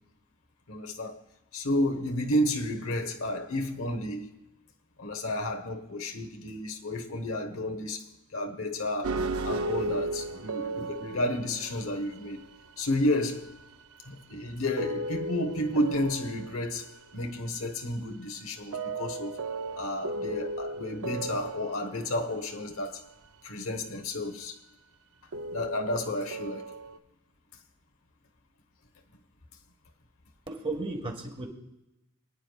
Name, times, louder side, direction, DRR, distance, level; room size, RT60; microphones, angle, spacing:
voice 1, 0.7-1.2 1.5-4.3 5.0-12.4 12.8-13.5 14.0-19.4 19.8-23.0 23.4-24.6 25.5-26.6, left 1 dB, 75° left, 1.2 m, -31 dB
sound 1, 9.0-14.1 14.5-14.6 14.8-17.4 17.8-17.9 18.6-22.8 25.3-27.0, right 2 dB, 90° right, 0.6 m, -36 dB
voice 2, 30.5-31.5, right 2 dB, 25° right, 1.7 m, -34 dB
25.0 x 9.7 x 2.4 m
head